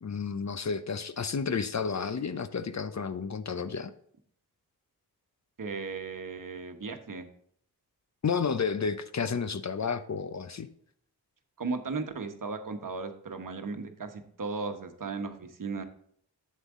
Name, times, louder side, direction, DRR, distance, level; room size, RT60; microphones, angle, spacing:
voice 1, 0.0-3.9 8.2-10.7, left 5 dB, 45° left, 12 dB, 0.7 m, -31 dB
voice 2, 5.6-7.3 11.6-15.8, right 4 dB, 50° right, 7 dB, 1.2 m, -36 dB
7.8 x 7.5 x 3.7 m, 0.63 s
cardioid pair, 40°, 40 cm